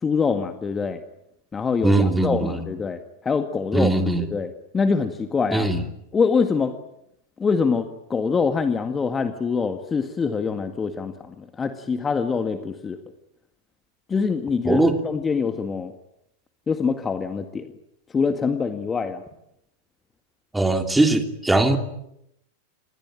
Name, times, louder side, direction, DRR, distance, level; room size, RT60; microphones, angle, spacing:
voice 1, 0.0-1.0 1.5-5.7 6.1-6.8 7.4-13.0 14.1-15.9 16.7-17.7 18.1-19.2, left 5 dB, 15° left, 8 dB, 1.9 m, -24 dB
voice 2, 1.8-2.6 3.7-4.3 5.5-5.8 14.6-15.0 20.5-21.8, right 2 dB, 5° right, 6 dB, 3.0 m, -20 dB
27.5 x 21.5 x 8.9 m, 0.80 s
figure-of-eight pair, 90°, 0 cm